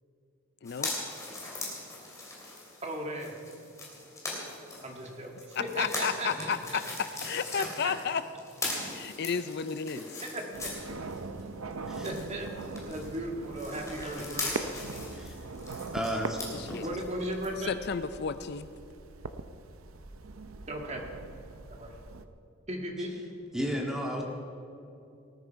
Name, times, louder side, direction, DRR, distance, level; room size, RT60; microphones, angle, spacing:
voice 1, 0.6-0.9 5.6-6.8 7.2-8.2 8.9-10.1 16.5-16.8 17.6-18.7, left 6 dB, 50° left, 12 dB, 0.4 m, -32 dB
sound 1, 0.6-11.4 11.7-17.5 17.9-18.0, left 2 dB, 15° left, 3.4 m, -40 dB
voice 2, 2.8-3.4 4.8-6.8 7.8-7.9 10.2-10.7 12.0-12.5 12.9-14.7 16.8-17.7 20.7-21.0 21.7-21.9 22.7-23.1, right 1 dB, 30° right, 1 dB, 1.9 m, -36 dB
sound 2, 10.5-22.2, right 3 dB, 85° right, 0.7 m, -41 dB
voice 3, 15.9-16.4 16.7-16.8 23.5-24.2, equal, 5° right, -1 dB, 1.9 m, -32 dB
19.0 x 13.0 x 4.6 m, 2.7 s
head